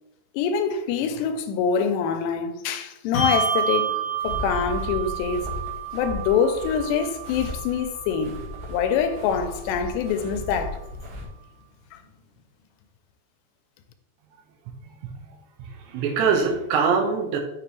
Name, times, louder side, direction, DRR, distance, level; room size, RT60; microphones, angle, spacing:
voice 1, 0.3-4.0 4.2-5.5 5.9-10.8 11.9-12.0, left 6 dB, 85° left, 2.7 m, -25 dB
Bell, 3.1-10.0, right 6 dB, 65° left, 1.8 m, -30 dB
Real steps in the snow, 4.2-11.3, left 2 dB, 60° right, 3.2 m, -36 dB
voice 2, 14.8-17.4, right 5 dB, 85° right, 3.4 m, -24 dB
7.1 x 6.7 x 3.1 m
omnidirectional pair, 5.1 m